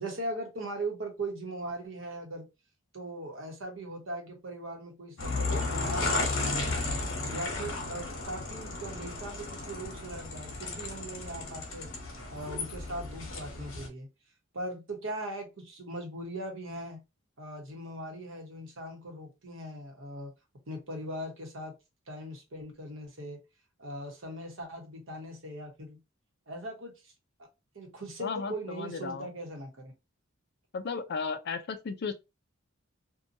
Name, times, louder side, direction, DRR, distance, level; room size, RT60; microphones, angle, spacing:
voice 1, 0.0-2.5 2.9-6.3 7.3-11.9 12.3-14.1 14.5-17.0 17.4-20.3 20.7-21.7 22.1-23.4 23.8-26.0 26.5-27.1 27.7-29.9, right 1 dB, 70° right, 1.0 m, -39 dB
sound 1, 5.2-13.9, left 3 dB, 80° left, 1.0 m, -34 dB
voice 2, 28.2-29.3 30.7-32.1, left 5 dB, 55° left, 0.4 m, -35 dB
2.7 x 2.2 x 2.6 m
head